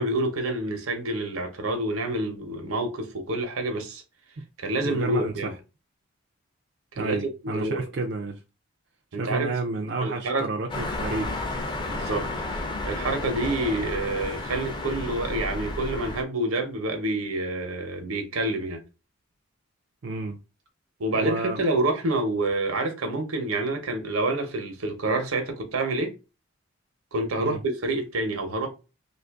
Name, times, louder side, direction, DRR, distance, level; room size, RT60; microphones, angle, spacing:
voice 1, 0.0-4.0 4.6-5.5 7.0-7.2 7.4-7.8 9.1-9.5 10.0-10.5 11.9-18.8 21.0-26.1 27.1-28.7, right 2 dB, 85° right, 0.9 m, -28 dB
voice 2, 4.8-5.5 7.0-8.4 9.2-11.4 20.0-20.4 21.1-21.6 27.4-27.6, right 3 dB, 55° right, 0.4 m, -30 dB
sound 1, 10.7-16.2, left 2 dB, 20° left, 0.5 m, -32 dB
2.8 x 2.5 x 3.4 m
head